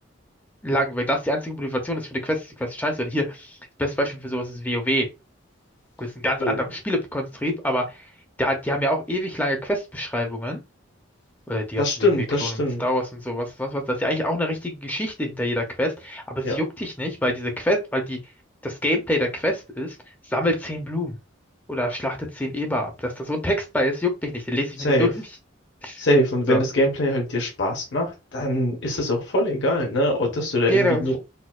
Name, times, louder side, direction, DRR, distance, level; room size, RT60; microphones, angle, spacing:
voice 1, 0.6-5.1 6.0-8.0 8.4-10.6 11.5-12.5 12.8-18.2 18.6-20.0 20.3-21.2 21.7-25.2 25.8-26.0 26.5-26.6 30.7-31.0, equal, 10° left, 0.5 m, -26 dB
voice 2, 11.8-12.8 16.4-16.6 24.8-25.1 26.0-31.2, left 1 dB, 60° left, 0.9 m, -23 dB
4.1 x 2.2 x 2.3 m
head